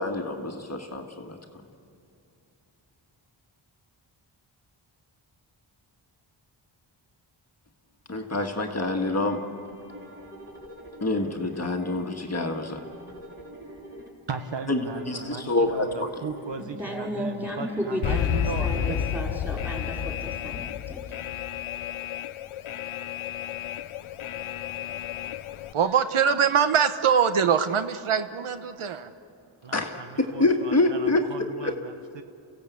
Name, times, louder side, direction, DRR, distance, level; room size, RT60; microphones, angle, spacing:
voice 1, 0.0-1.4 8.1-9.4 11.0-12.8 14.7-14.8 15.1-16.1 29.7-31.3 31.6-31.7, left 2 dB, 30° left, 3 dB, 1.7 m, -26 dB
sound 1, 9.2-19.1, equal, 25° right, 3.9 m, -45 dB
voice 2, 14.3-19.0 29.6-32.2, right 5 dB, 60° right, 7 dB, 1.4 m, -37 dB
voice 3, 16.6-18.3 18.6-21.0, equal, 5° right, -1 dB, 5.0 m, -33 dB
Alarm, 18.0-25.7, left 10 dB, 75° left, 0.8 m, -31 dB
voice 4, 25.7-29.1, right 7 dB, 75° right, 10 dB, 1.0 m, -23 dB
29.5 x 16.0 x 8.3 m, 2.7 s
wide cardioid pair, 105°, 50 cm